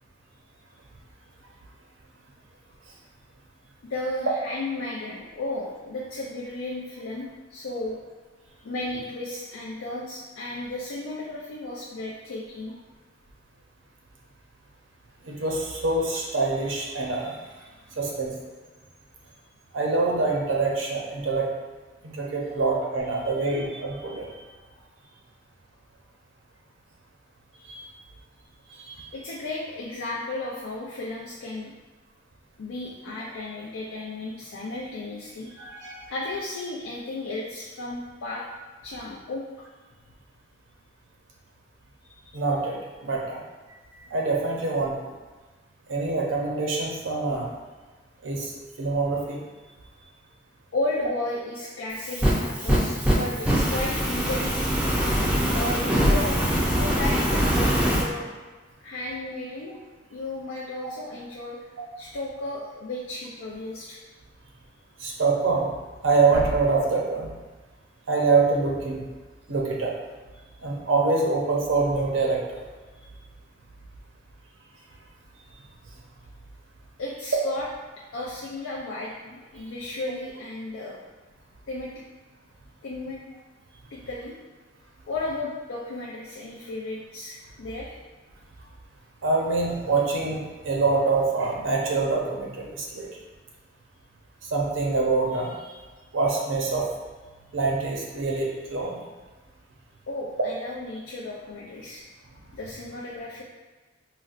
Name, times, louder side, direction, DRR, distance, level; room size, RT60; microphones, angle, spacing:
voice 1, 3.8-8.0 8.6-12.7 23.4-24.5 29.1-31.7 32.6-35.7 36.1-38.4 38.8-39.4 42.0-42.1 50.7-54.7 55.5-58.3 58.8-59.8 60.1-61.7 62.0-64.0 77.0-77.7 78.1-81.0 81.7-81.9 82.8-83.2 83.9-84.3 85.1-87.9 100.1-102.0 102.5-103.4, left 2 dB, 90° left, -5 dB, 0.4 m, -34 dB
voice 2, 15.2-17.4 18.0-18.4 19.7-21.5 22.0-24.3 27.7-27.8 28.7-29.1 35.6-36.1 42.3-43.4 43.9-45.1 45.9-47.5 48.2-48.5 48.8-49.4 65.0-65.7 66.0-67.3 68.1-69.0 69.5-69.9 70.6-72.6 89.2-93.1 94.4-95.8 96.1-96.9 97.5-99.0, right 3 dB, 80° right, -1 dB, 0.6 m, -25 dB
Fire, 51.9-58.0, equal, 5° right, 0.3 m, -23 dB
3.9 x 2.0 x 2.4 m, 1.3 s
head